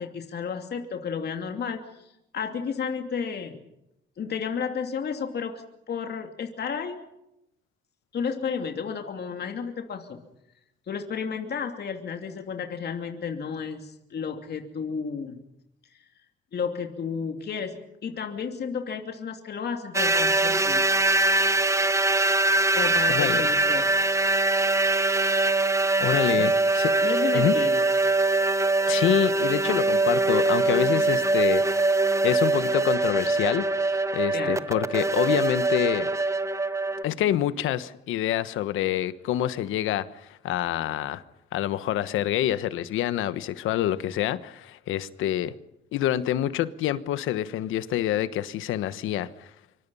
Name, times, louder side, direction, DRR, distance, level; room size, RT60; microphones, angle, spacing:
voice 1, 0.0-3.6 4.2-7.1 8.1-10.2 10.9-15.4 16.5-20.8 22.7-23.8 26.4-26.5 27.0-27.9 34.3-34.6, left 6 dB, 55° left, 2.8 m, -32 dB
sound 1, 19.9-37.0, right 2 dB, 15° right, 1.0 m, -23 dB
voice 2, 23.1-23.4 26.0-26.9 27.3-27.5 28.9-31.8 32.2-33.7 34.1-36.1 37.0-41.2 41.5-45.5 45.9-49.5, left 12 dB, 90° left, 1.2 m, -27 dB
25.5 x 25.0 x 5.6 m
cardioid pair, 90°, 20 cm